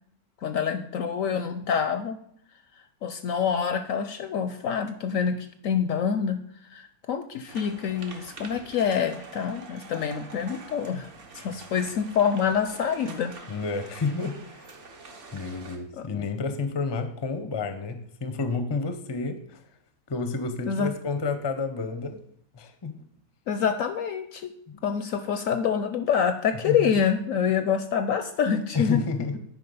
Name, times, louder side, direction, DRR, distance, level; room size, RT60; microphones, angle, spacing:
voice 1, 0.4-2.2 3.0-6.4 6.7-13.4 15.9-16.1 20.7-20.9 23.5-24.5 24.8-29.0, left 7 dB, 70° left, 9 dB, 0.8 m, -26 dB
sound 1, 7.5-15.8, right 3 dB, 50° right, 1.5 m, -45 dB
voice 2, 13.5-14.7 15.3-19.6 20.1-22.2 22.5-23.0 24.7-24.8 26.6-26.9 28.7-29.4, left 4 dB, 30° left, 9 dB, 0.5 m, -30 dB
9.9 x 5.0 x 5.4 m, 0.68 s
omnidirectional pair, 1.7 m